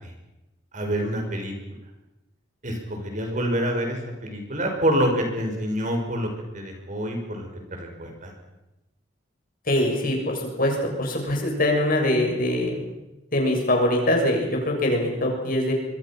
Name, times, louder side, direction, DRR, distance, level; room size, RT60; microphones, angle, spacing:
voice 1, 0.7-1.5 2.6-2.8 3.1-6.3 6.5-7.5 7.8-8.3, equal, 45° right, 3 dB, 5.8 m, -26 dB
voice 2, 9.7-12.8 13.3-15.7, left 1 dB, 50° left, 1 dB, 7.1 m, -23 dB
25.5 x 23.5 x 6.0 m, 0.98 s
head